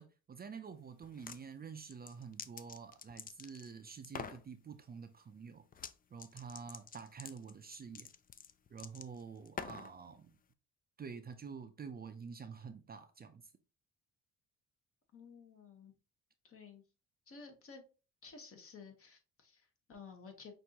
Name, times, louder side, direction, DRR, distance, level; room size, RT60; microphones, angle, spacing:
voice 1, 0.0-5.6 6.1-8.1 8.7-10.4 11.0-13.4, right 6 dB, 30° right, 0.5 m, -48 dB
sound 1, 1.0-1.4 1.9-3.7 4.0-4.4 5.7-5.9 6.2-9.9, left 7 dB, 30° left, 0.4 m, -47 dB
voice 2, 15.1-15.9 16.4-16.8 17.3-17.8 18.2-20.5, left 5 dB, 45° left, 1.3 m, -54 dB
5.8 x 2.6 x 2.8 m
cardioid pair, 90°, 30 cm